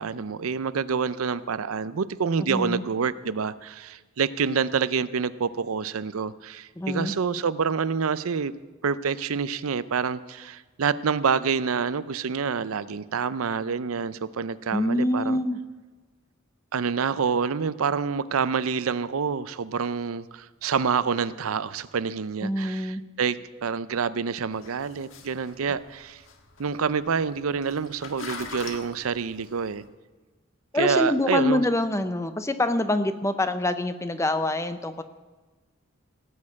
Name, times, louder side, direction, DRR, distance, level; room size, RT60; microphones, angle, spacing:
voice 1, 0.0-8.5 8.8-15.4 16.7-26.2 26.6-29.8 30.7-31.6, right 6 dB, 90° right, 15 dB, 0.5 m, -27 dB
voice 2, 2.4-2.8 6.8-7.1 14.7-15.6 22.4-23.0 30.7-35.0, left 1 dB, 15° left, 10 dB, 0.6 m, -25 dB
sound 1, 24.5-29.9, left 4 dB, 70° left, 1.5 m, -43 dB
18.0 x 6.5 x 8.5 m, 1.3 s
head